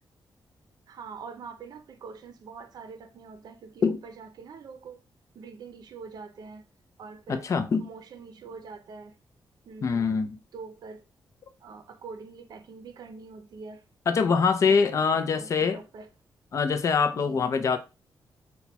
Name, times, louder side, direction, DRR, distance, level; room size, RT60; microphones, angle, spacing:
voice 1, 0.9-5.0 5.3-6.6 7.0-7.4 7.8-9.2 9.6-10.1 10.5-11.0 11.6-13.8 14.6-16.1 17.1-17.4, right 5 dB, 60° right, 0.6 m, -44 dB
voice 2, 7.3-7.9 9.8-10.4 14.1-15.8 16.5-17.8, left 5 dB, 40° left, 0.5 m, -24 dB
4.3 x 2.3 x 4.1 m
wide cardioid pair, 170°, 8 cm